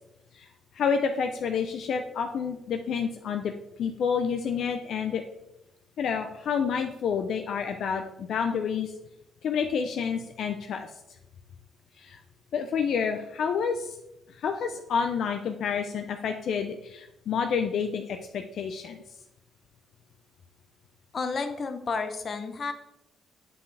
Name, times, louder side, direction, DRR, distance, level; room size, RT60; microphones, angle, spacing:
voice 1, 0.7-3.5 3.8-5.2 6.0-8.9 9.4-10.9 12.0-12.2 12.5-14.0 14.4-19.0, left 6 dB, 70° left, 6 dB, 0.5 m, -29 dB
voice 2, 21.1-22.7, left 4 dB, 45° left, 8 dB, 0.8 m, -31 dB
7.7 x 5.5 x 3.3 m, 0.88 s
cardioid pair, 90°, 0 cm